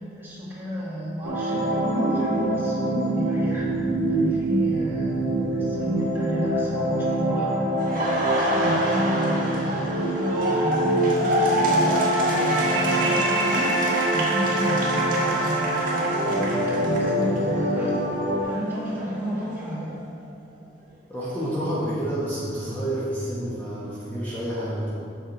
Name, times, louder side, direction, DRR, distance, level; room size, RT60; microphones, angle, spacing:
voice 1, 0.1-3.7 4.1-5.1 5.5-7.5 8.3-9.7 10.1-18.0 18.5-19.9, equal, 10° right, -8 dB, 1.6 m, -31 dB
sound 1, 1.2-18.4, right 1 dB, 70° right, 1.2 m, -25 dB
Bass guitar, 3.6-7.3, right 1 dB, 25° left, 1.0 m, -39 dB
Laughter, 7.8-17.6 17.9-19.9, right 1 dB, 45° right, 1.5 m, -28 dB
voice 2, 21.1-24.9, right 1 dB, 10° left, -10 dB, 1.3 m, -29 dB
7.5 x 6.4 x 4.0 m, 2.4 s
head